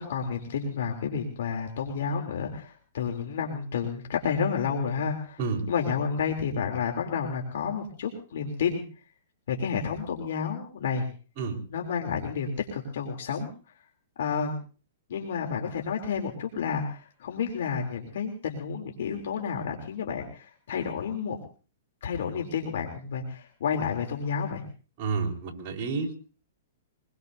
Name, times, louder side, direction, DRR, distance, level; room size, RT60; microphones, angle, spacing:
voice 1, 0.0-5.4 5.7-8.8 9.5-11.1 11.7-13.5 14.2-14.5 15.1-21.4 22.0-24.6, left 6 dB, 70° left, 2 dB, 3.2 m, -30 dB
voice 2, 25.0-26.2, right 4 dB, 35° right, -2 dB, 4.4 m, -30 dB
24.0 x 21.0 x 2.7 m, 0.38 s
hypercardioid pair, 140°, 0 cm